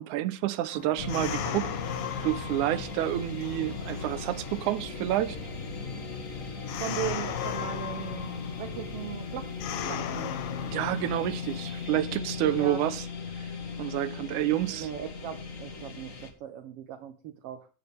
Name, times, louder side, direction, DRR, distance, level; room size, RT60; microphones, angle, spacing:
voice 1, 0.0-1.8 2.2-5.4 10.6-13.1 13.8-14.9, right 13 dB, 85° right, 2.2 m, -29 dB
sound 1, 0.7-11.9, left 10 dB, 70° left, 1.5 m, -38 dB
sound 2, 1.0-16.3, left 4 dB, 35° left, 1.4 m, -38 dB
voice 2, 6.8-10.3 12.4-12.8 14.7-17.7, right 9 dB, 70° right, 1.6 m, -38 dB
16.5 x 7.1 x 3.4 m
omnidirectional pair, 3.5 m